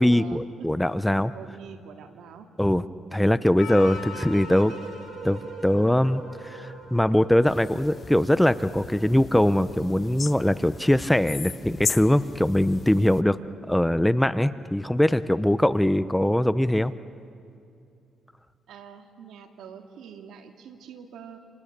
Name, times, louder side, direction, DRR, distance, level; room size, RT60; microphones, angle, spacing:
voice 1, 0.0-1.3 2.6-2.8 3.1-4.7 5.2-13.4 13.7-16.9, left 1 dB, 5° left, 14 dB, 0.7 m, -22 dB
voice 2, 1.3-2.5 18.7-21.4, right 7 dB, 80° right, 5 dB, 2.3 m, -45 dB
Percussion, 3.6-7.9 8.2-8.3, left 9 dB, 80° left, 6.0 m, -43 dB
sound 1, 3.7-8.0, right 4 dB, 55° right, 3.6 m, -42 dB
sound 2, 7.5-13.2, left 6 dB, 45° left, 0.7 m, -37 dB
28.5 x 28.0 x 6.7 m, 2.5 s
cardioid pair, 90°, 0 cm